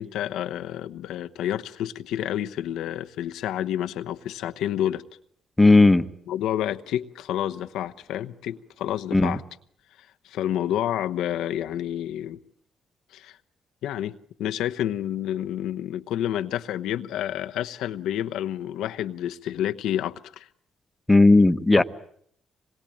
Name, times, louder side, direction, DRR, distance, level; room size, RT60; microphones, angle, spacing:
voice 1, 0.0-5.0 6.3-9.4 10.2-12.4 13.1-13.4 13.8-20.5 21.7-21.8, left 11 dB, 85° left, 1.0 m, -29 dB
voice 2, 5.6-6.0 9.1-9.4 21.1-21.8, left 2 dB, 15° left, 1.2 m, -15 dB
26.5 x 21.0 x 8.7 m
cardioid pair, 90°, 0 cm